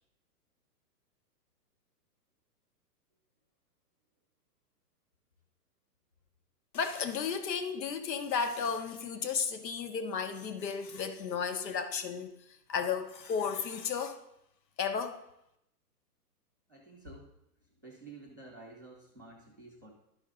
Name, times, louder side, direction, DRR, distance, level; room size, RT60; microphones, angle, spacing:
voice 1, 6.7-12.3 12.7-14.2 14.8-15.2, left 6 dB, 85° left, 1.2 m, -33 dB
voice 2, 16.7-17.3 17.6-19.9, right 2 dB, 15° right, 0.4 m, -51 dB
12.0 x 5.5 x 3.7 m
hypercardioid pair, 165°, 49 cm